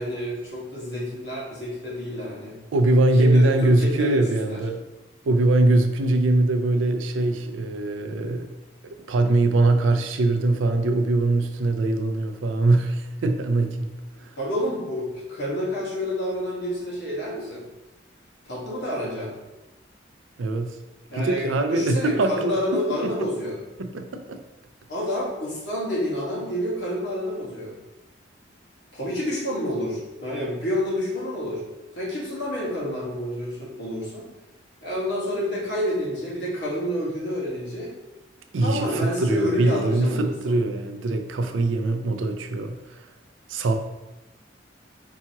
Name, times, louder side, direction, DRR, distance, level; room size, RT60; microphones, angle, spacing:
voice 1, 0.0-2.5 3.2-4.6 14.4-17.6 18.4-19.3 21.1-23.6 24.9-27.7 28.9-31.6 31.9-34.3 34.8-37.9 38.6-40.5, equal, 60° left, -5 dB, 1.3 m, -29 dB
voice 2, 2.7-4.8 5.2-8.5 8.8-13.9 20.4-20.8 21.1-23.1 23.8-24.4 38.5-43.0 43.5-43.7, right 2 dB, 85° right, 6 dB, 0.4 m, -22 dB
4.6 x 2.8 x 2.8 m, 1.0 s
head